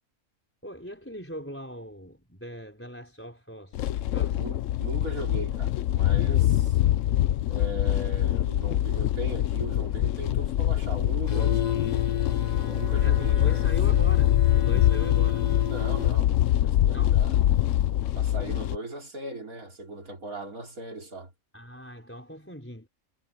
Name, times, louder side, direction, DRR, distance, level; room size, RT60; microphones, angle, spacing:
voice 1, 0.6-3.8 4.1-4.5 6.3-6.6 13.0-15.6 16.9-17.2 21.5-22.9, equal, 10° left, 4.5 m, -40 dB
sound 1, 3.7-18.8, left 12 dB, 70° left, 0.9 m, -24 dB
voice 2, 4.3-6.7 7.5-11.8 12.6-13.7 15.7-16.3 16.6-17.4 18.2-21.3, right 2 dB, 80° right, 4.3 m, -38 dB
sound 2, 11.3-16.2, left 8 dB, 30° left, 1.1 m, -32 dB
omnidirectional pair, 1.5 m